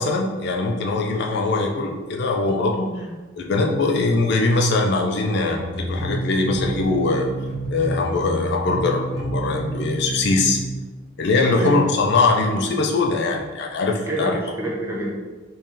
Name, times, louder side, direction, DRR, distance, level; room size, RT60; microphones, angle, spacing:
voice 1, 0.0-2.9 3.4-7.3 7.7-10.6 11.2-14.4, left 3 dB, 55° left, 1 dB, 0.4 m, -21 dB
sound 1, 5.5-10.8, right 2 dB, ahead, 1.0 m, -29 dB
voice 2, 14.1-15.1, right 1 dB, 15° right, -4 dB, 0.7 m, -27 dB
3.1 x 2.7 x 3.7 m, 1.2 s
head